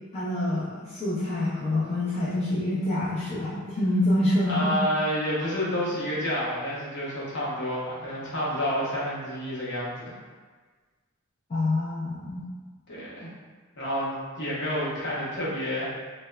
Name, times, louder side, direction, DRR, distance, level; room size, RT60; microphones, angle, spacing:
voice 1, 0.1-4.8 11.5-12.4, left 1 dB, 30° left, -9 dB, 0.4 m, -26 dB
voice 2, 4.5-10.1 12.9-13.3 13.8-15.9, equal, 60° left, -8 dB, 0.8 m, -29 dB
2.9 x 2.0 x 2.2 m, 1.4 s
head